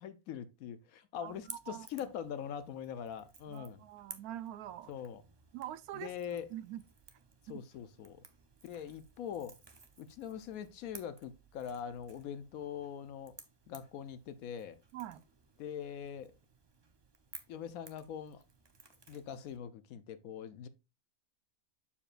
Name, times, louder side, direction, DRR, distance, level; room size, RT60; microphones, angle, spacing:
voice 1, 0.0-3.8 4.9-5.2 5.9-6.5 7.4-8.2 8.6-9.6 10.0-13.4 13.7-14.8 15.6-16.3 17.5-18.4 19.1-20.7, left 8 dB, 70° left, 1.1 m, -43 dB
Crackle / Crack, 1.2-19.6, right 4 dB, 35° right, 0.4 m, -57 dB
voice 2, 1.2-1.9 3.5-4.9 5.5-6.1 6.5-6.8 7.5-7.6 14.9-15.2, right 12 dB, 80° right, 1.1 m, -44 dB
7.1 x 7.0 x 2.5 m
omnidirectional pair, 1.6 m